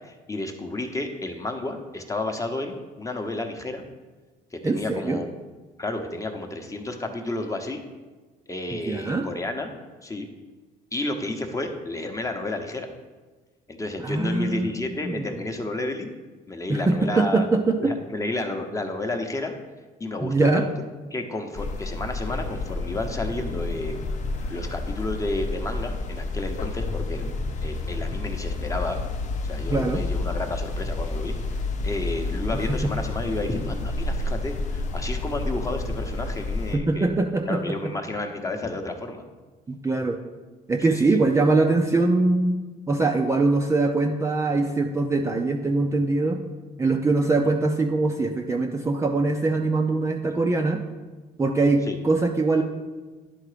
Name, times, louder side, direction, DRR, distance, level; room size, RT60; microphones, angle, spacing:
voice 1, 0.0-3.8 4.5-5.3 5.8-7.8 8.5-9.7 10.0-10.3 10.9-12.9 13.7-16.1 16.5-17.5 17.8-19.5 20.0-20.9 21.1-24.0 24.5-27.3 27.6-29.0 29.4-37.2 37.5-39.2 40.9-41.2 47.4-47.5 51.9-52.0, left 2 dB, 20° left, 4 dB, 0.9 m, -31 dB
voice 2, 4.6-5.2 8.7-9.3 14.0-15.4 16.7-18.0 20.2-20.6 29.7-30.0 32.8-32.9 36.7-37.9 39.7-40.2 40.7-42.6 42.9-46.4 46.8-50.8 51.4-52.6, right 3 dB, 15° right, 3 dB, 0.5 m, -23 dB
sound 1, 21.5-36.8, left 2 dB, 45° left, 0.7 m, -30 dB
10.5 x 3.8 x 4.9 m, 1.3 s
cardioid pair, 110°, 17 cm